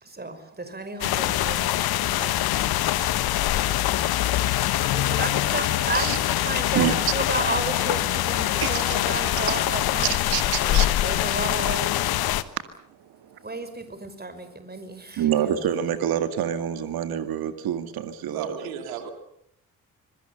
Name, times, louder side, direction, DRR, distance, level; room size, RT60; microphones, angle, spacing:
voice 1, 0.0-3.0 4.9-10.3 10.6-11.9 13.4-15.8 18.2-18.5, right 3 dB, 25° right, 9 dB, 5.4 m, -33 dB
sound 1, 1.0-12.4, left 14 dB, 60° left, 1.3 m, -24 dB
voice 2, 8.6-9.0 10.3-10.9 13.0-13.4 15.2-18.6, right 10 dB, 60° right, 10 dB, 2.0 m, -27 dB
voice 3, 18.3-19.1, right 8 dB, 85° right, 7 dB, 2.9 m, -34 dB
26.0 x 23.0 x 7.0 m, 0.72 s
hypercardioid pair, 45°, 41 cm